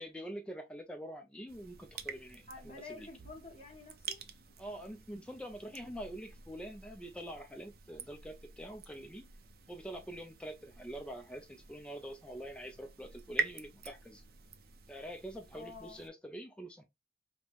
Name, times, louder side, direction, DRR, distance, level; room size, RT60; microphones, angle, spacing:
voice 1, 0.0-3.1 4.6-9.3 9.7-14.2 14.9-16.8, equal, 5° left, 0.3 m, -45 dB
sound 1, 1.5-16.1, right 6 dB, 55° right, 0.5 m, -46 dB
voice 2, 2.5-4.2 15.5-16.0, left 3 dB, 35° left, 1.2 m, -49 dB
5.1 x 2.1 x 2.9 m
head